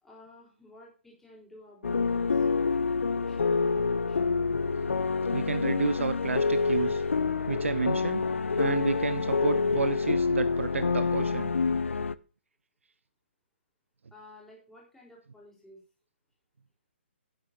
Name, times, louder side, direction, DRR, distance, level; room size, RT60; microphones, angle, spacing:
voice 1, 0.0-4.3 14.1-15.8, left 1 dB, 5° left, -4 dB, 3.8 m, -53 dB
sound 1, 1.8-12.1, left 4 dB, 80° left, 0.6 m, -27 dB
voice 2, 5.3-7.0 7.5-8.2 8.6-11.5, right 5 dB, 80° right, 13 dB, 0.9 m, -30 dB
12.0 x 10.5 x 2.7 m, 0.35 s
hypercardioid pair, 140°, 7 cm